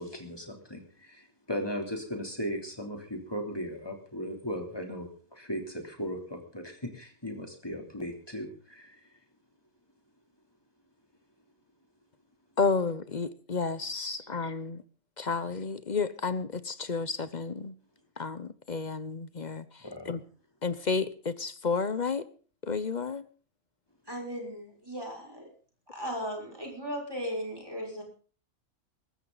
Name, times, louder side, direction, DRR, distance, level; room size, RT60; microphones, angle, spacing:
voice 1, 0.0-9.0 14.0-14.3 19.8-20.1, equal, 15° left, 3 dB, 3.3 m, -37 dB
voice 2, 12.6-14.8 15.2-17.7 18.2-20.2 20.6-22.2 22.6-23.2, left 4 dB, 40° left, 14 dB, 0.7 m, -31 dB
voice 3, 24.1-25.4 25.9-28.0, equal, 15° right, 0 dB, 5.8 m, -36 dB
22.5 x 13.5 x 4.0 m, 0.40 s
omnidirectional pair, 1.5 m